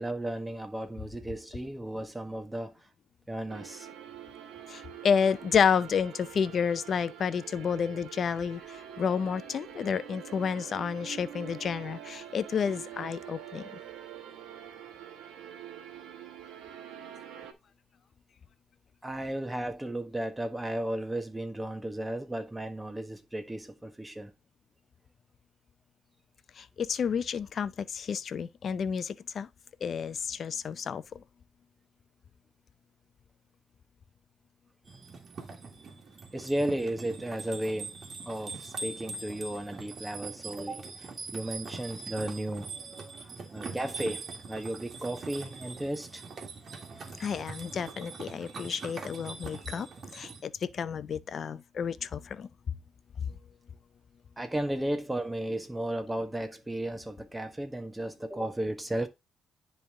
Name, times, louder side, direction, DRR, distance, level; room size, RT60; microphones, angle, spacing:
voice 1, 0.0-2.8 3.3-3.9 19.0-24.3 36.3-37.9 38.2-42.7 43.2-46.2 54.4-59.1, right 1 dB, 10° right, 1.4 m, -34 dB
sound 1, 3.5-17.5, right 9 dB, 85° right, 1.2 m, -45 dB
voice 2, 4.7-13.7 26.6-29.5 29.8-31.2 47.2-49.9 50.1-52.5, left 7 dB, 55° left, 0.6 m, -30 dB
sound 2, 34.8-50.4, right 4 dB, 50° right, 1.8 m, -42 dB
10.0 x 3.5 x 3.7 m
cardioid pair, 90°, 0 cm